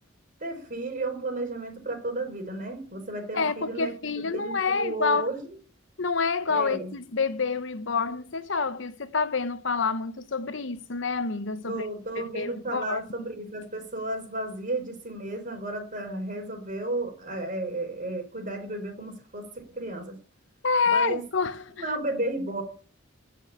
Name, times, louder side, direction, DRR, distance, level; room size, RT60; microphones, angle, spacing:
voice 1, 0.4-5.4 6.5-6.9 11.7-20.2 20.9-21.2 21.8-22.6, right 2 dB, 40° right, 4.7 m, -33 dB
voice 2, 3.3-5.3 6.0-11.9 12.2-13.0 20.6-21.8, left 4 dB, 65° left, 0.9 m, -28 dB
16.0 x 6.3 x 9.6 m
head